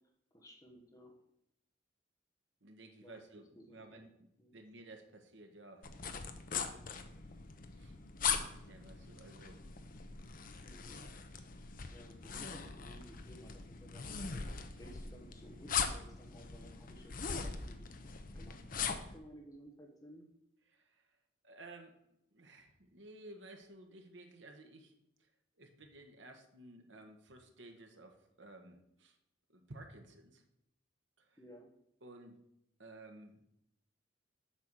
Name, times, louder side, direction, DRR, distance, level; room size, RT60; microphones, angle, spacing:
voice 1, 0.3-1.1 3.0-3.2 3.6-4.0 4.4-4.6 10.6-10.9 11.6-17.9 18.3-20.3 31.4-31.7, equal, 20° left, 0 dB, 1.3 m, -56 dB
voice 2, 2.6-4.1 4.5-5.9 7.1-7.3 7.8-9.6 20.7-21.2 21.4-22.0 22.3-24.9 25.2-25.3 25.6-29.2 29.5-30.4 31.2-31.4 32.0-32.4 32.8-33.4, right 2 dB, 70° right, 4 dB, 1.5 m, -55 dB
sound 1, 5.8-19.2, left 6 dB, 45° left, 0.7 m, -41 dB
8.2 x 5.6 x 6.4 m, 0.78 s
head